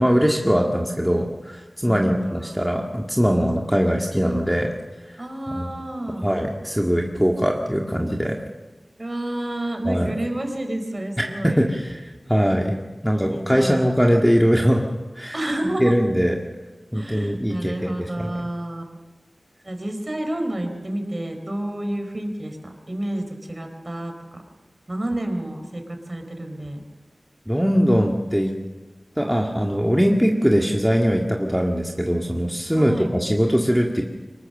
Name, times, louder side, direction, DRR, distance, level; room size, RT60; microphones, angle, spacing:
voice 1, 0.0-4.7 5.6-5.8 6.2-8.4 9.9-10.1 11.2-12.8 13.0-14.8 15.2-15.4 15.8-16.4 16.9-18.3 27.5-28.5 29.2-34.0, equal, ahead, 0 dB, 1.8 m, -21 dB
voice 2, 1.8-2.6 5.2-6.3 9.0-11.7 13.1-13.8 15.3-16.0 16.9-18.8 19.6-24.4 24.9-26.8 32.7-33.1, right 1 dB, 35° right, 5 dB, 4.0 m, -30 dB
24.0 x 19.5 x 6.7 m, 1.2 s
wide cardioid pair, 65°, 0 cm